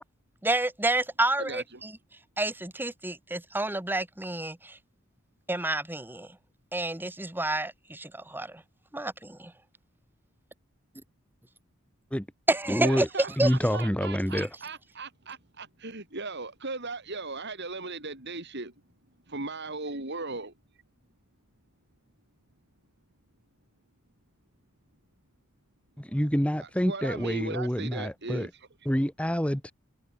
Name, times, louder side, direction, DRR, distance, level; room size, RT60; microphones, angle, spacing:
voice 1, 0.4-1.9 2.4-4.8 5.5-6.3 6.7-8.6 8.9-9.5 12.5-13.0 13.4-13.5, right 2 dB, 10° right, 1.2 m, -29 dB
voice 2, 1.4-1.8 12.8-18.7 19.3-20.5 26.6-28.7, right 3 dB, 55° right, 5.0 m, -37 dB
voice 3, 12.7-13.1 13.4-14.5 26.0-28.5 28.9-29.7, equal, 5° left, 2.0 m, -27 dB
head